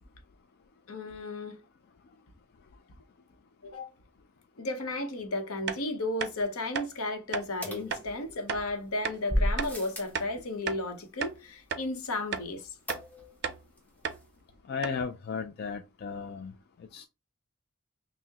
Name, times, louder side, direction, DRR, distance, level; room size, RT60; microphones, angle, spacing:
voice 1, 0.9-1.6 3.6-3.9 4.6-12.7, left 2 dB, 75° left, 0.8 m, -34 dB
sound 1, 5.7-5.8 6.2-6.3 6.7-6.9 7.3-7.5 7.9-8.1 8.5-8.6 9.0-9.2 9.6-9.7 10.1-10.9 11.2-11.4 11.7-11.9 12.3-12.5 12.9-13.0 13.4-13.6 14.0-14.2 14.5-14.6 14.8-15.0, right 7 dB, 50° right, 0.4 m, -34 dB
sound 2, 7.6-8.6 9.3-10.2 12.9-13.5 13.8-13.9 14.1-14.2, equal, 5° left, 0.7 m, -32 dB
voice 2, 14.7-16.5 16.9-17.1, left 5 dB, 45° left, 0.3 m, -35 dB
5.7 x 2.0 x 2.8 m
head